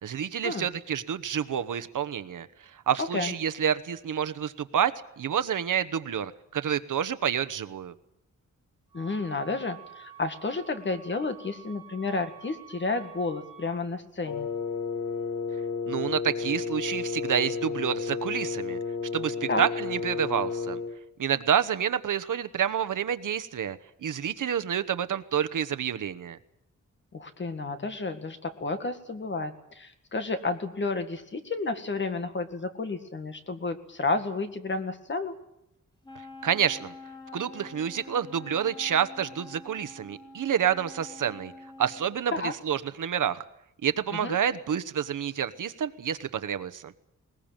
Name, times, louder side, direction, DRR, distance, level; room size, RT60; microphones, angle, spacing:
voice 1, 0.0-2.5 2.9-7.9 15.9-18.8 19.1-20.8 21.2-26.4 36.4-36.9 37.3-41.5 41.8-43.4 43.8-46.9, right 8 dB, 75° right, 10 dB, 1.1 m, -28 dB
voice 2, 3.0-3.3 8.9-14.5 19.5-19.7 27.1-35.3 42.3-42.5 44.1-44.4, left 3 dB, 35° left, 7 dB, 1.9 m, -31 dB
Wind instrument woodwind instrument, 8.9-13.8, right 10 dB, 15° right, 4.4 m, -49 dB
Wind instrument woodwind instrument 2, 14.2-21.0, left 5 dB, 80° left, 1.9 m, -32 dB
Wind instrument woodwind instrument 3, 36.0-42.2, left 2 dB, 15° left, 3.8 m, -46 dB
21.0 x 20.0 x 8.9 m, 0.79 s
wide cardioid pair, 180°, 32 cm